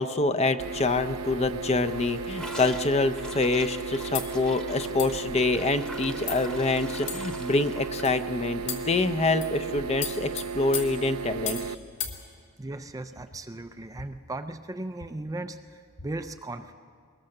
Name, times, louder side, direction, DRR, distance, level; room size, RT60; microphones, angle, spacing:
voice 1, 0.0-11.7, left 3 dB, 30° left, 9 dB, 0.7 m, -26 dB
sound 1, 0.6-11.8, right 5 dB, 85° right, 0.6 m, -35 dB
Gurgling / Toilet flush, 1.9-10.1 10.4-10.5 10.8-11.3 11.5-11.6 11.9-12.0 13.0-13.1, equal, 5° left, 1.1 m, -44 dB
sound 2, 4.1-4.4 5.0-5.2 5.9-6.0 6.3-6.5 7.1-7.4 8.0-8.2 8.7-9.0 9.4-9.6 10.0-11.7 12.0-12.2, left 8 dB, 60° left, 2.1 m, -35 dB
voice 2, 12.6-16.7, right 2 dB, 15° right, 8 dB, 0.4 m, -37 dB
21.5 x 20.0 x 6.6 m, 2.2 s
head